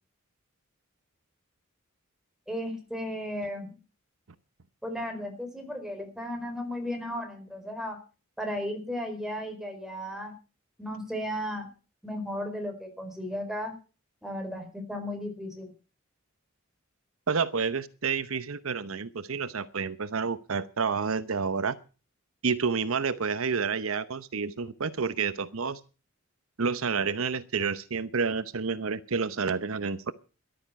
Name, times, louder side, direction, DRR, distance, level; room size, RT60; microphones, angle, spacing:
voice 1, 2.5-3.7 4.8-8.0 8.4-10.3 10.8-11.7 12.0-13.7 14.2-15.7, equal, 5° right, 4 dB, 4.4 m, -35 dB
voice 2, 17.3-21.8 22.4-25.8 26.6-30.1, right 5 dB, 85° right, 14 dB, 0.9 m, -29 dB
14.0 x 12.5 x 5.8 m, 0.35 s
head